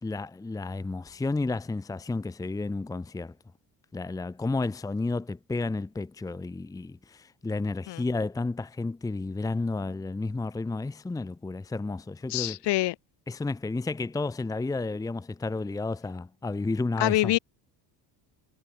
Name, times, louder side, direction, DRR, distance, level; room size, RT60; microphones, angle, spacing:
voice 1, 0.0-3.3 3.9-12.6 13.3-17.4, left 3 dB, 10° left, 0.9 m, -32 dB
voice 2, 12.3-12.9 17.0-17.4, left 17 dB, 65° left, 4.2 m, -25 dB
cardioid pair, 160°, 43 cm